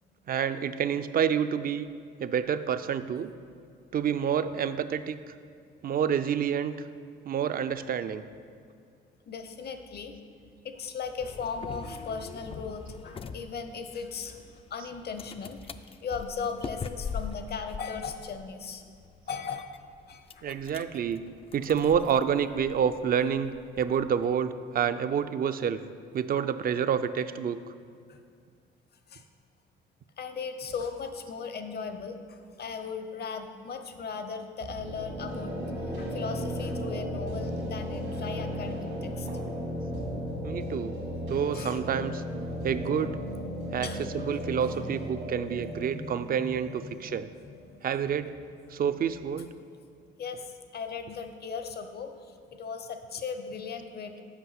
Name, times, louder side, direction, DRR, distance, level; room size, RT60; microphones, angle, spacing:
voice 1, 0.3-1.9 2.2-3.3 3.9-5.2 5.8-6.7 7.3-8.2 14.8-14.9 20.4-21.3 21.5-23.5 23.8-25.8 26.1-27.6 40.4-41.0 41.3-42.2 42.6-43.2 43.7-47.3 47.8-48.3 48.7-49.5, right 8 dB, 45° right, 12 dB, 0.4 m, -28 dB
voice 2, 9.3-10.1 10.6-15.6 16.0-18.8 19.3-19.7 20.1-20.6 28.1-28.2 29.1-29.2 30.2-35.5 35.9-39.3 41.5-41.8 42.5-42.8 43.3-47.2 48.0-48.2 50.2-54.2, left 5 dB, 55° left, 7 dB, 0.8 m, -38 dB
sound 1, 11.2-24.3, left 5 dB, 30° left, 0.3 m, -43 dB
sound 2, 34.6-48.3, equal, 80° right, 1.9 m, -35 dB
8.0 x 5.3 x 5.8 m, 2.3 s
cardioid pair, 90°, 20 cm